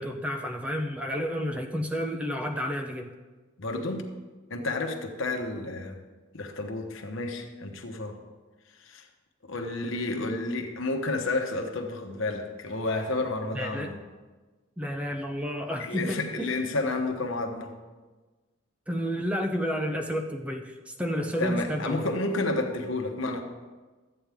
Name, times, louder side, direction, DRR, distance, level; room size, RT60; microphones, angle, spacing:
voice 1, 0.0-3.1 13.5-13.9 14.8-16.6 18.9-22.0, equal, 5° right, 3 dB, 0.6 m, -31 dB
voice 2, 3.6-4.1 4.5-6.0 6.3-8.2 8.8-9.0 9.5-14.0 15.8-17.7 21.4-23.4, left 2 dB, 85° left, 4 dB, 1.1 m, -31 dB
13.0 x 8.7 x 3.6 m, 1.3 s
head